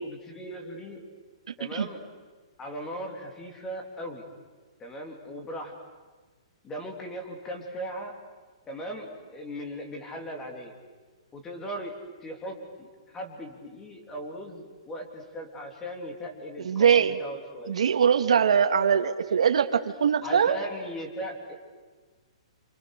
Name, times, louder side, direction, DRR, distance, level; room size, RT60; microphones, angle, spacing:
voice 1, 0.0-1.2 1.6-2.0 2.6-4.2 4.8-5.7 6.6-8.1 8.7-10.8 11.3-11.9 12.2-17.7 20.2-21.6, equal, 10° left, 3 dB, 3.2 m, -38 dB
voice 2, 16.6-17.2 17.7-20.6, right 7 dB, 85° right, 7 dB, 2.0 m, -22 dB
29.0 x 26.5 x 6.7 m, 1.4 s
hypercardioid pair, 170°, 3 cm